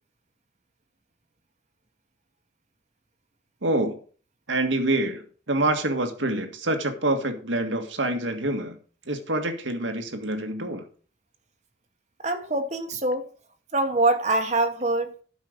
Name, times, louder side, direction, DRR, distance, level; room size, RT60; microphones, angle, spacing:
voice 1, 3.6-4.0 4.5-8.8 9.1-10.9, right 2 dB, 80° right, 1.8 m, -26 dB
voice 2, 12.2-13.3 13.7-15.1, right 2 dB, 35° right, 1.1 m, -24 dB
12.0 x 5.8 x 5.1 m
head